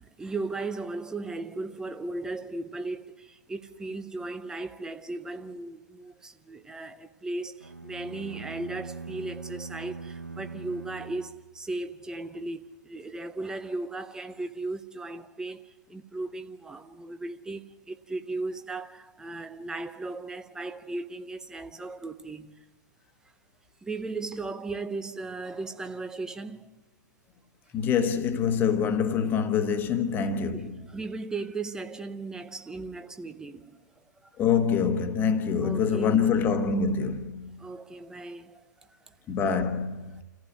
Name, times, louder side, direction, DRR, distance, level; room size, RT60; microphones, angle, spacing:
voice 1, 0.0-22.7 23.8-26.7 30.5-34.4 35.6-36.3 37.6-39.1, right 3 dB, 5° right, 0.7 m, -37 dB
sound 1, 7.6-12.0, right 4 dB, 85° right, 1.0 m, -42 dB
voice 2, 27.7-30.8 34.4-37.6 39.3-40.2, left 6 dB, 20° left, 1.3 m, -25 dB
28.0 x 15.0 x 6.2 m
figure-of-eight pair, 115°, 10 cm